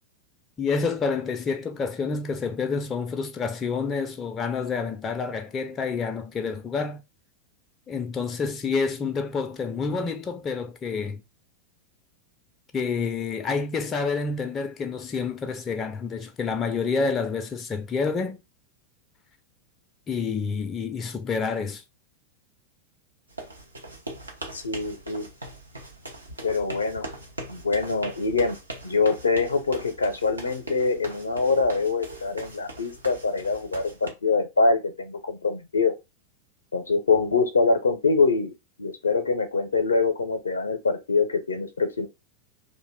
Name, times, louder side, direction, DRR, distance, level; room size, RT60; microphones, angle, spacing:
voice 1, 0.6-7.0 7.9-11.2 12.7-18.4 20.1-21.8, left 5 dB, 25° left, 0.3 m, -28 dB
sound 1, 23.3-34.1, right 1 dB, 80° right, 0.7 m, -41 dB
voice 2, 24.5-25.3 26.4-27.1 27.5-28.6 28.8-35.9 36.7-38.5 38.8-42.1, left 4 dB, 75° left, 0.5 m, -24 dB
2.5 x 2.1 x 3.2 m
figure-of-eight pair, 90°, 0 cm